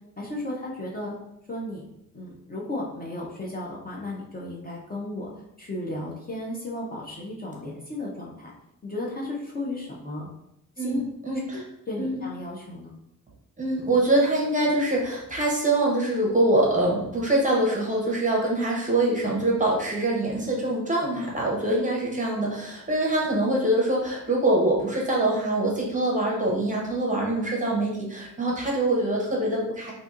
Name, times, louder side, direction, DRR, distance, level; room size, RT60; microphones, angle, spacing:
voice 1, 0.2-1.2 1.5-1.9 2.1-5.3 5.6-8.5 8.8-10.3 10.8-11.0 11.5-12.9 21.7-22.1, left 1 dB, 25° left, -4 dB, 0.5 m, -34 dB
voice 2, 10.8-11.6 12.0-12.2 13.6-29.9, right 1 dB, 25° right, -3 dB, 0.6 m, -24 dB
4.1 x 2.6 x 2.4 m, 0.82 s
wide cardioid pair, 180°, 34 cm